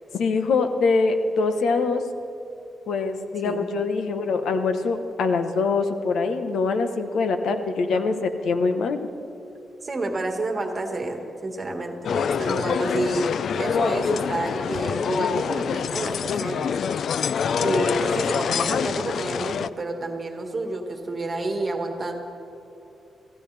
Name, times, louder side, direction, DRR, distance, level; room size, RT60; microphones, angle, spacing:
voice 1, 0.1-2.0 2.9-9.1, left 4 dB, 85° left, 7 dB, 1.0 m, -24 dB
voice 2, 9.8-13.3 13.6-16.7 17.6-22.1, right 2 dB, 30° right, 3 dB, 1.7 m, -29 dB
sound 1, 12.0-19.7, left 7 dB, 65° left, 0.3 m, -25 dB
26.0 x 15.5 x 3.4 m, 2.8 s
wide cardioid pair, 150°, 0 cm